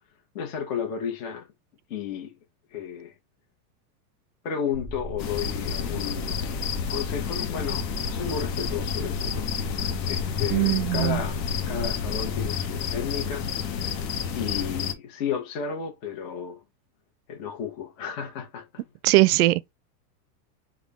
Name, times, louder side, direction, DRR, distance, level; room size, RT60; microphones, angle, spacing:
voice 1, 0.3-1.5 1.9-2.3 2.7-3.1 4.4-6.4 6.9-9.5 10.1-13.5 14.3-16.6 17.3-18.7, left 7 dB, 50° left, 1.2 m, -33 dB
sound 1, 4.7-12.5, left 2 dB, 15° left, 0.3 m, -36 dB
sound 2, 5.2-14.9, left 7 dB, 80° left, 1.0 m, -30 dB
voice 2, 10.5-11.2 19.0-19.7, right 19 dB, 65° right, 0.5 m, -20 dB
3.6 x 2.3 x 3.5 m
supercardioid pair, 160°, 49 cm